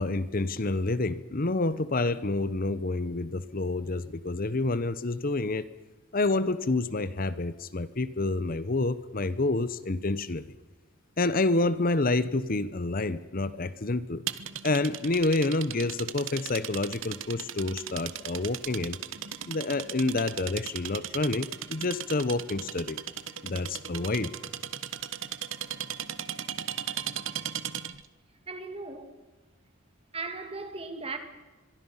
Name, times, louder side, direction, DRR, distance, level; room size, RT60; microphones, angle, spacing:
voice 1, 0.0-5.6 6.1-10.5 11.2-14.2 14.6-19.0 19.5-23.0 23.4-24.3, left 2 dB, 45° left, 0.9 m, -28 dB
sound 1, 14.3-28.1, right 10 dB, 65° right, 1.1 m, -37 dB
voice 2, 28.5-29.1 30.1-31.2, right 3 dB, 30° right, 2.5 m, -37 dB
24.5 x 23.0 x 5.7 m
head